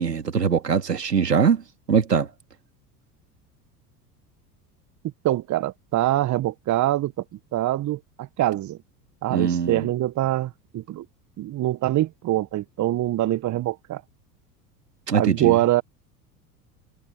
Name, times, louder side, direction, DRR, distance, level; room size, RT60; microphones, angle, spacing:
voice 1, 0.0-1.6 1.9-2.3 9.3-9.9 15.1-15.6, right 6 dB, 85° right, 2.9 m, -22 dB
voice 2, 5.2-7.1 7.5-8.8 9.2-11.0 11.4-14.0 15.1-15.8, right 14 dB, 35° right, 1.5 m, -24 dB
figure-of-eight pair, 70°, 47 cm